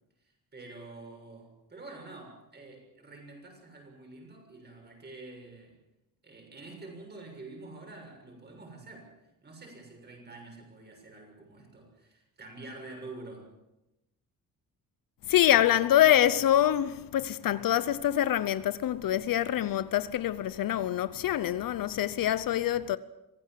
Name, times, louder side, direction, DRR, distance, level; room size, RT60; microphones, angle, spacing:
voice 1, 0.2-5.8 6.2-13.5, right 2 dB, 25° right, 7.1 m, -47 dB
voice 2, 15.3-23.0, left 11 dB, 65° left, 0.8 m, -25 dB
25.0 x 16.5 x 7.6 m
cardioid pair, 155°, 37 cm